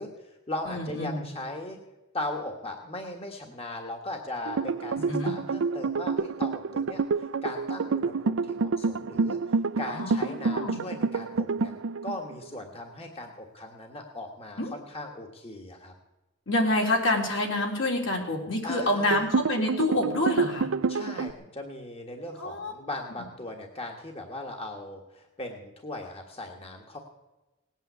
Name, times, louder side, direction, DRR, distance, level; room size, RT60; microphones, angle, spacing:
voice 1, 0.0-1.8 2.1-11.7 12.0-15.9 18.6-19.2 20.9-27.0, left 2 dB, 30° left, 2 dB, 1.6 m, -38 dB
voice 2, 0.7-1.2 5.1-5.3 9.9-10.8 14.6-14.7 16.5-20.7 22.4-22.7, left 1 dB, 70° left, 1 dB, 3.5 m, -27 dB
sound 1, 4.5-12.5 19.1-21.3, right 4 dB, 80° right, 0.5 m, -28 dB
18.5 x 9.1 x 8.1 m, 1.1 s
head